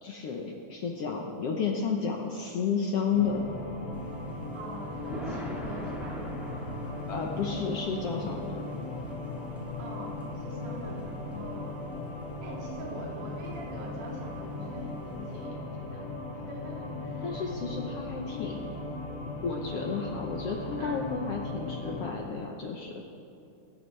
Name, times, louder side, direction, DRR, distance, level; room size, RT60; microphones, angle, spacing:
voice 1, 0.0-3.4 7.1-8.6 17.2-18.7 19.4-23.0, left 5 dB, 65° left, 1 dB, 1.6 m, -32 dB
sound 1, 3.1-22.1, left 2 dB, 45° left, 2.9 m, -38 dB
Thunder, 3.9-15.5, right 1 dB, ahead, 3.2 m, -46 dB
voice 2, 4.5-6.2 9.8-11.9 12.4-17.6 20.8-21.1, right 2 dB, 70° right, -3 dB, 3.9 m, -44 dB
26.5 x 13.5 x 3.3 m, 2.6 s
omnidirectional pair, 3.7 m